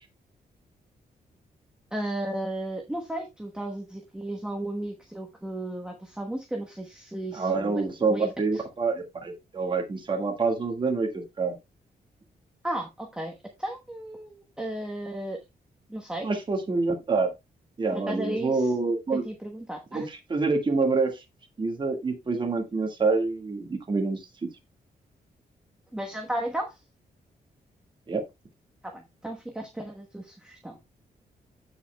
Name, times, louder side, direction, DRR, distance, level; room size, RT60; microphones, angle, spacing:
voice 1, 1.9-7.8 8.1-8.6 12.6-15.4 15.9-16.3 17.9-18.7 19.1-20.1 25.9-26.8 28.8-30.8, right 1 dB, 5° right, 1.1 m, -34 dB
voice 2, 7.3-11.1 11.4-11.5 16.2-17.3 17.8-19.2 19.9-21.2 21.6-24.2 28.1-28.2, right 4 dB, 30° right, 1.7 m, -26 dB
15.0 x 5.1 x 2.2 m
wide cardioid pair, 130°, 16 cm